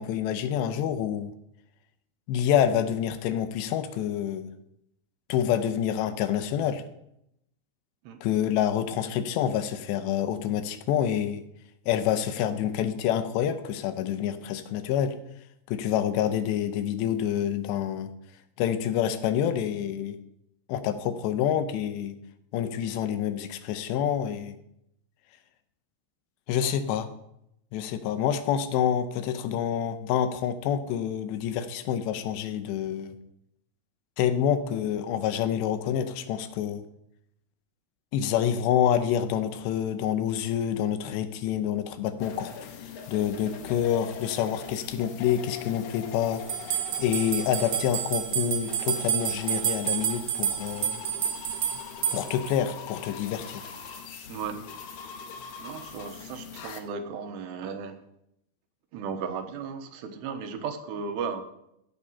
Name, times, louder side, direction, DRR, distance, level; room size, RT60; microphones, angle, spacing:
voice 1, 0.0-1.3 2.3-4.5 5.3-6.8 8.2-11.4 11.9-15.2 15.7-18.1 18.6-20.2 20.7-22.2 22.5-24.6 26.5-27.1 27.7-33.2 34.2-36.9 38.1-46.4 47.0-51.0 52.1-53.7, left 9 dB, 85° left, 11 dB, 3.1 m, -27 dB
sound 1, 42.2-56.8, left 7 dB, 65° left, 2.0 m, -42 dB
sound 2, 46.5-52.5, right 11 dB, 70° right, 2.4 m, -29 dB
voice 2, 54.3-54.6 55.6-58.0 58.9-61.4, right 6 dB, 85° right, 7 dB, 3.2 m, -35 dB
14.0 x 8.6 x 5.5 m, 0.79 s
omnidirectional pair, 4.9 m